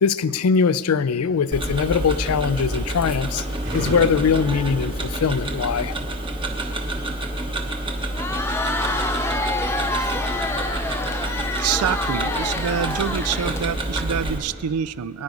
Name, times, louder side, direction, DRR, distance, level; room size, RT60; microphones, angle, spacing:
voice 1, 0.0-3.4 3.7-5.9, left 6 dB, 85° left, 16 dB, 0.4 m, -21 dB
sound 1, 1.0-7.1, right 1 dB, 45° right, 4.0 m, -38 dB
Tick-tock, 1.5-14.4, right 1 dB, 25° right, 1.0 m, -28 dB
Crowd, 8.0-14.0, left 2 dB, 10° left, 0.7 m, -27 dB
voice 2, 11.6-15.2, right 8 dB, 80° right, 18 dB, 0.4 m, -26 dB
22.0 x 9.6 x 5.2 m, 2.6 s
head